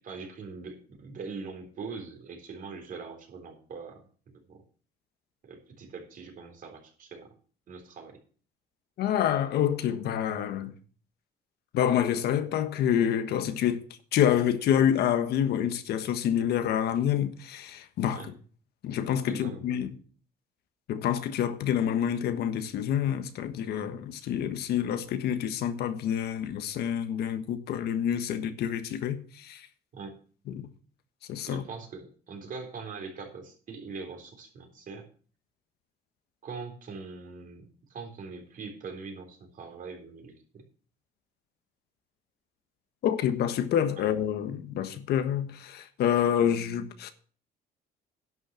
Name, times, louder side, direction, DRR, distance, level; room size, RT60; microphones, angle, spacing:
voice 1, 0.0-4.0 4.5-4.6 5.4-7.3 7.7-8.2 18.1-18.3 19.3-19.6 29.9-30.2 31.4-35.1 36.4-40.6 44.0-44.1, right 4 dB, 55° right, 3.8 m, -42 dB
voice 2, 9.0-10.7 11.7-13.8 14.1-18.3 18.8-19.9 20.9-29.7 30.5-30.7 31.3-31.6 43.0-47.1, left 9 dB, 70° left, 1.4 m, -27 dB
11.0 x 6.4 x 7.4 m
cardioid pair, 110°, 17 cm